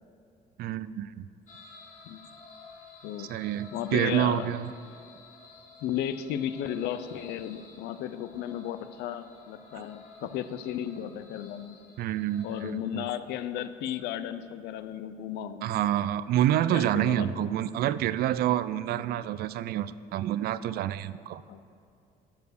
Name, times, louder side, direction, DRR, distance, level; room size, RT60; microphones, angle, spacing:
voice 1, 0.6-1.3 3.3-4.7 9.7-9.8 12.0-13.1 15.6-21.4, right 12 dB, 65° right, 16 dB, 0.4 m, -28 dB
sound 1, 1.5-12.7, left 3 dB, 45° left, 1.6 m, -52 dB
voice 2, 3.0-3.3 3.7-4.5 5.8-11.8 12.4-15.7 16.7-17.5 21.5-21.6, left 10 dB, 85° left, 12 dB, 0.6 m, -34 dB
13.0 x 4.8 x 6.5 m, 2.4 s
cardioid pair, 110°, 17 cm